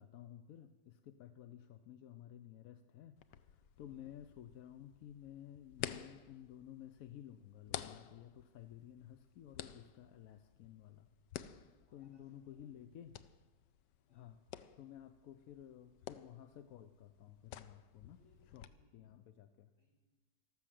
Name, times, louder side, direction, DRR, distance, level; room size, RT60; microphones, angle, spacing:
voice 1, 0.0-3.2 3.5-11.1 11.9-13.1 14.1-14.4 14.8-18.2 18.5-18.6 18.9-19.7, left 11 dB, 65° left, 9 dB, 1.0 m, -54 dB
sound 1, 3.2-18.7, left 11 dB, 85° left, 1.3 m, -52 dB
voice 2, 11.8-12.9 14.1-14.4 18.1-19.0 19.8-19.9, left 1 dB, 40° left, -2 dB, 4.7 m, -73 dB
13.0 x 13.0 x 7.5 m, 1.2 s
omnidirectional pair, 1.8 m